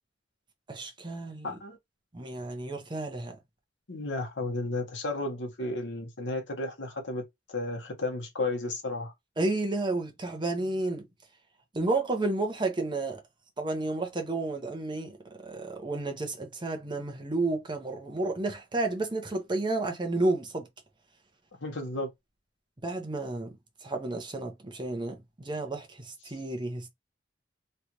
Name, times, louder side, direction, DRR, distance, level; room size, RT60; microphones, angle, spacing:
voice 1, 0.7-1.6 2.1-3.4 9.4-11.0 11.7-13.2 13.6-15.2 15.4-20.7 22.8-23.5 23.8-26.9, right 2 dB, 25° right, 0.9 m, -31 dB
voice 2, 1.4-1.8 3.9-9.1 21.6-22.1, left 2 dB, 70° left, 1.1 m, -33 dB
3.2 x 2.5 x 2.9 m
head